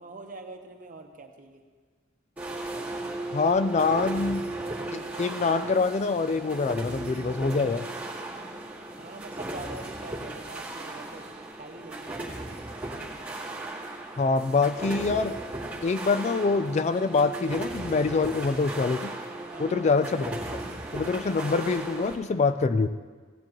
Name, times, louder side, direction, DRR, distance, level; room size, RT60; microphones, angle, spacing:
voice 1, 0.0-1.6 9.0-11.3 11.6-12.6 19.5-19.8, right 2 dB, 45° right, 4 dB, 1.0 m, -44 dB
sound 1, 2.4-22.2, right 2 dB, 10° right, 1.9 m, -36 dB
voice 2, 3.3-4.5 4.9-7.9 14.2-15.4 15.8-19.1 19.6-20.4 20.9-22.9, left 4 dB, 35° left, 11 dB, 0.3 m, -25 dB
16.5 x 9.9 x 3.0 m, 1.5 s
head